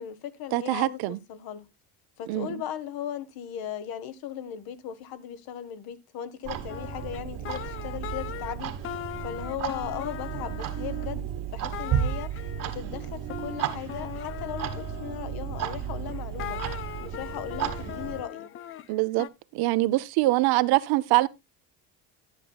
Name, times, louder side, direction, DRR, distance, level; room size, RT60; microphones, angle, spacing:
voice 1, 0.0-1.7 2.2-12.3 12.6-16.6 17.0-18.5, left 10 dB, 65° left, 1.2 m, -37 dB
voice 2, 0.5-1.2 2.3-2.6 18.9-19.3 19.5-21.3, right 19 dB, 70° right, 0.7 m, -24 dB
Clock, 6.4-18.2, right 9 dB, 55° right, 1.4 m, -33 dB
sound 1, 6.7-8.6 8.8-11.1 11.7-15.6 16.0-19.3, left 11 dB, 35° left, 0.4 m, -40 dB
10.5 x 9.9 x 2.3 m
cardioid pair, 130°, 39 cm